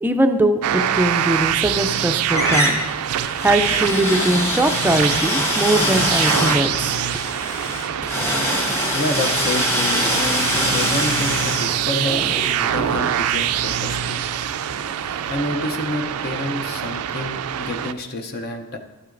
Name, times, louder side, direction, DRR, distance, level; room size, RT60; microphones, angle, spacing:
voice 1, 0.0-2.8 3.4-6.9, right 1 dB, 10° right, 7 dB, 0.4 m, -21 dB
sound 1, 0.6-17.9, right 9 dB, 80° right, 0.4 m, -25 dB
sound 2, 1.4-2.0 2.3-13.2, equal, 10° left, 1.1 m, -24 dB
sound 3, 3.9-5.3 5.6-7.2 7.7-8.3 8.8-9.2 9.4-9.5 9.8-9.9 11.0-11.1 11.5-11.6 12.1-15.7 16.1-16.5 17.0-17.1 17.5-17.6, left 1 dB, 60° left, 2.2 m, -44 dB
voice 2, 8.9-14.2 15.3-18.8, left 2 dB, 45° left, 5 dB, 0.6 m, -28 dB
12.0 x 8.8 x 2.5 m, 1.2 s
head